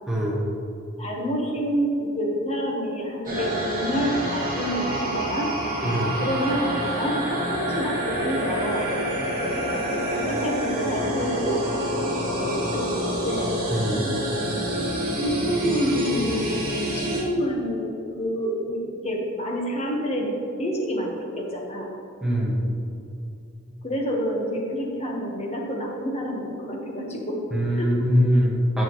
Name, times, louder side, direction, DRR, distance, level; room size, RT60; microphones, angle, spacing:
voice 1, 0.1-0.4 5.8-6.1 13.7-14.0 22.2-22.6 27.5-28.8, equal, ahead, -5 dB, 1.6 m, -22 dB
voice 2, 1.0-5.5 6.2-8.9 10.1-12.0 12.3-13.6 15.1-16.7 16.9-20.3 20.6-21.9 23.8-27.4 27.7-28.1, equal, 30° left, -1 dB, 1.3 m, -28 dB
sound 1, 3.2-17.2, equal, 40° right, 2.1 m, -27 dB
14.0 x 6.2 x 3.1 m, 2.7 s
head